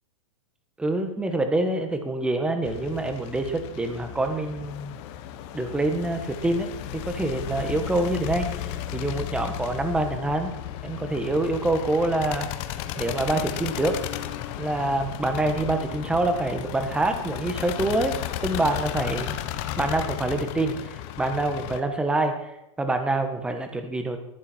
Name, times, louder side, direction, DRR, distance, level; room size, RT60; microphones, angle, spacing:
voice 1, 0.8-5.0 5.5-10.5 10.8-12.5 13.0-14.0 14.6-18.2 18.4-19.4 19.8-22.5 22.8-24.2, right 2 dB, 5° right, 6 dB, 1.6 m, -26 dB
sound 1, 2.6-21.8, left 11 dB, 35° left, 1.3 m, -34 dB
18.0 x 14.0 x 4.6 m, 0.90 s
hypercardioid pair, 150°, 16 cm